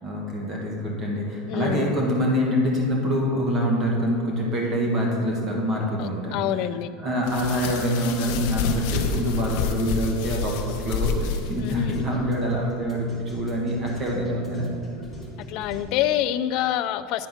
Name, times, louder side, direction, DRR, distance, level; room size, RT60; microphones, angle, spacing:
voice 1, 0.0-6.4 7.0-14.7, equal, 25° right, -2 dB, 1.5 m, -25 dB
voice 2, 1.5-1.9 6.0-6.9 11.6-12.0 15.5-17.3, left 11 dB, 45° left, 12 dB, 0.3 m, -26 dB
sound 1, 7.2-12.0, left 5 dB, 60° left, 0.8 m, -28 dB
sound 2, 9.9-15.8, left 1 dB, 5° right, 1.3 m, -42 dB
9.3 x 4.5 x 5.7 m, 2.3 s
supercardioid pair, 170°, 0 cm